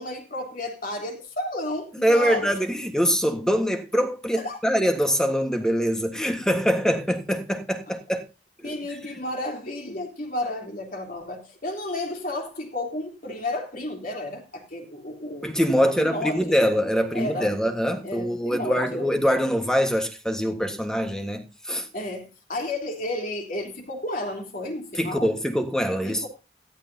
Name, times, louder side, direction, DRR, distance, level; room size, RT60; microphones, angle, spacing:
voice 1, 0.0-2.5 4.4-4.6 8.6-16.7 17.1-17.6 18.0-19.1 21.9-25.3 26.0-26.3, left 1 dB, 50° left, 3.4 m, -32 dB
voice 2, 2.0-8.2 8.6-8.8 15.4-21.9 25.0-26.3, equal, 5° left, 1.5 m, -24 dB
14.5 x 13.0 x 2.8 m
head